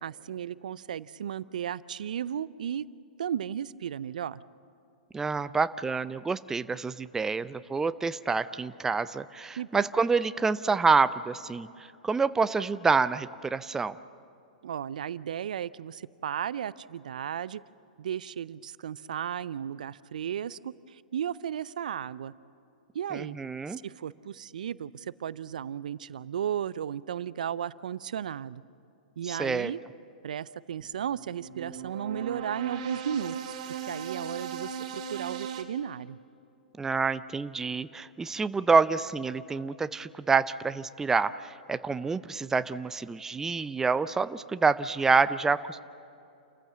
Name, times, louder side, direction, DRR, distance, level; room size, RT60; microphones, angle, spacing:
voice 1, 0.0-2.9 3.2-4.4 9.6-9.8 14.6-17.6 18.0-22.3 22.9-23.4 23.7-28.6 29.2-29.8 30.2-33.5 33.9-36.2, right 9 dB, 65° right, 19 dB, 0.5 m, -34 dB
voice 2, 5.1-11.7 12.0-14.0 23.1-23.8 29.3-29.7 36.8-45.8, right 4 dB, 10° right, 14 dB, 0.5 m, -27 dB
sound 1, 30.8-35.6, right 7 dB, 50° right, 2.7 m, -38 dB
29.0 x 14.5 x 7.4 m, 2.7 s
hypercardioid pair, 110°, 5 cm